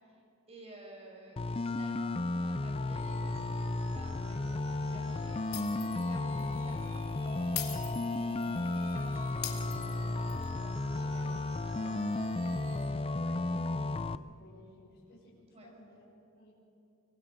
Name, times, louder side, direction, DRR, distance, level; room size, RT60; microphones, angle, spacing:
voice 1, 0.5-12.3 15.5-15.7, right 1 dB, 30° right, 0 dB, 5.3 m, -53 dB
sound 1, 1.4-14.2, left 2 dB, 25° left, 0.4 m, -34 dB
sound 2, 2.9-12.9, right 2 dB, 70° right, 2.1 m, -52 dB
Shatter, 5.5-6.1 6.4-6.5 7.6-8.6 9.4-10.4, left 11 dB, 80° left, 2.9 m, -40 dB
voice 2, 13.2-16.1 16.3-16.5, left 1 dB, 50° left, -6 dB, 6.3 m, -57 dB
25.0 x 24.5 x 5.3 m, 2.6 s
head